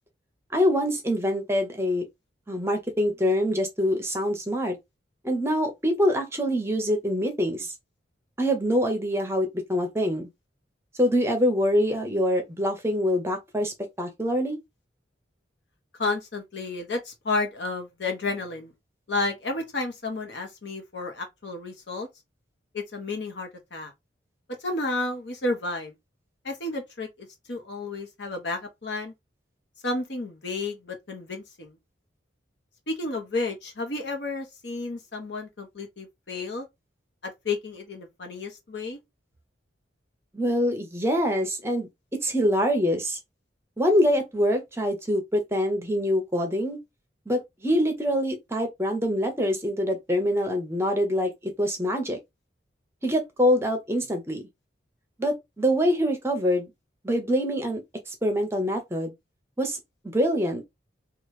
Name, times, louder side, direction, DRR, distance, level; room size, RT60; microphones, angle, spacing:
voice 1, 0.5-2.0 2.5-4.8 5.2-7.7 8.4-10.3 11.0-14.6 40.3-41.9 42.2-43.2 43.8-46.8 47.3-51.3 51.6-52.2 53.0-54.4 55.2-56.7 57.0-57.8 58.1-59.1 59.6-59.8 60.1-60.6, equal, 15° right, 0.6 m, -25 dB
voice 2, 16.0-18.7 19.1-22.1 22.7-23.9 24.6-25.9 26.4-29.1 29.8-31.8 32.9-36.7 37.2-39.0, left 3 dB, 70° left, 1.0 m, -31 dB
3.0 x 2.4 x 3.0 m
head